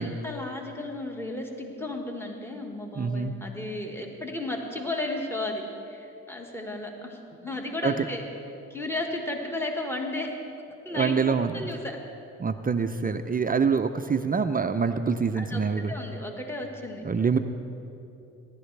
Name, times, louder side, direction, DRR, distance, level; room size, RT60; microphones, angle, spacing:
voice 1, 0.0-8.2 8.7-10.4 10.9-12.0 15.3-15.6 15.9-17.3, left 2 dB, 5° left, 1 dB, 1.6 m, -34 dB
voice 2, 3.0-3.3 7.8-8.1 10.9-11.5 12.4-15.9 17.0-17.4, right 5 dB, 25° right, 8 dB, 0.5 m, -25 dB
18.0 x 11.5 x 3.3 m, 2.7 s
supercardioid pair, 70°, 33 cm